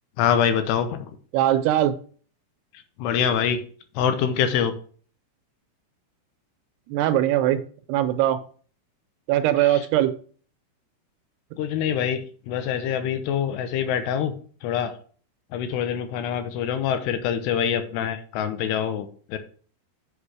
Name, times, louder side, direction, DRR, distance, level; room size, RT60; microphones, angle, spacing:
voice 1, 0.2-1.1 3.0-3.6 4.0-4.7 9.7-9.8 11.6-12.2 12.5-14.4 14.6-14.9 15.5-19.4, left 8 dB, 80° left, 9 dB, 3.0 m, -25 dB
voice 2, 1.3-1.9 6.9-7.6 7.9-8.4 9.3-10.1, right 12 dB, 80° right, 10 dB, 2.7 m, -21 dB
7.4 x 6.4 x 4.8 m, 0.43 s
omnidirectional pair, 4.9 m